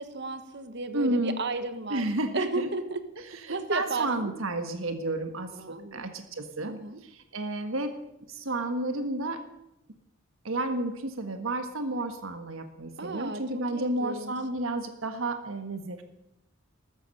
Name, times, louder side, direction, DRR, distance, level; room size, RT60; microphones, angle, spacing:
voice 1, 0.0-2.0 2.3-3.0 3.5-4.1 5.5-6.0 6.6-7.0 13.0-13.4 13.7-14.3, right 3 dB, 55° right, 10 dB, 1.3 m, -33 dB
voice 2, 0.9-1.4 1.9-2.7 3.2-8.0 8.3-9.5 10.4-16.0, right 2 dB, 75° right, 8 dB, 1.5 m, -31 dB
14.0 x 13.5 x 6.6 m, 0.86 s
head